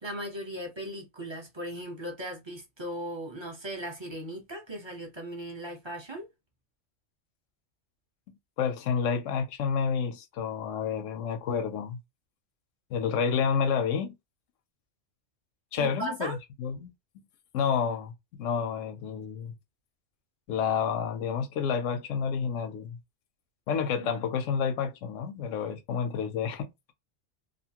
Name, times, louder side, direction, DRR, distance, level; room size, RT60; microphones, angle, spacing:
voice 1, 0.0-6.2 15.8-16.4 24.0-24.1, right 1 dB, 25° right, 0.9 m, -37 dB
voice 2, 8.6-12.0 12.9-14.2 15.7-16.9 17.5-18.1 18.4-19.5 20.5-23.0 23.7-26.7, left 6 dB, 85° left, 1.0 m, -29 dB
2.7 x 2.5 x 2.8 m
omnidirectional pair, 1.3 m